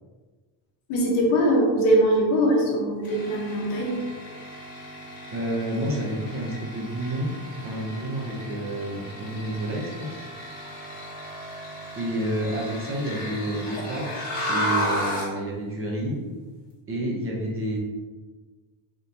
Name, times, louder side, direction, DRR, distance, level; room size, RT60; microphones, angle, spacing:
voice 1, 0.9-4.0, right 1 dB, 90° left, -1 dB, 1.2 m, -21 dB
sound 1, 3.0-15.4, equal, 50° left, 1.3 m, -34 dB
voice 2, 5.3-7.3 7.6-10.2 12.0-16.2 16.9-17.8, right 1 dB, 30° right, -3 dB, 0.7 m, -29 dB
3.8 x 3.6 x 2.8 m, 1.3 s
cardioid pair, 180°, 47 cm